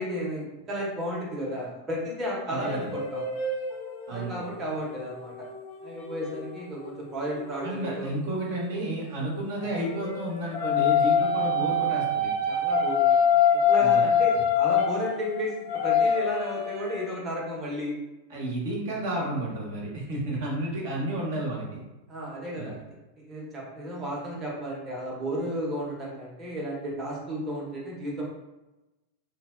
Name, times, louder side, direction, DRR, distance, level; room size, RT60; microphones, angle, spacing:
voice 1, 0.0-3.2 4.1-5.3 5.8-8.1 12.5-13.4 13.7-17.9 20.3-20.4 22.1-22.9 23.2-28.2, equal, 20° right, -4 dB, 0.9 m, -33 dB
sound 1, 2.5-7.7 9.6-17.1, left 5 dB, 50° left, 0.7 m, -25 dB
voice 2, 2.5-2.9 4.1-4.4 7.6-12.3 13.8-14.0 18.3-21.8 22.6-22.7, right 1 dB, 55° right, -3 dB, 0.8 m, -31 dB
3.2 x 2.0 x 2.4 m, 1.0 s
figure-of-eight pair, 90°, 0 cm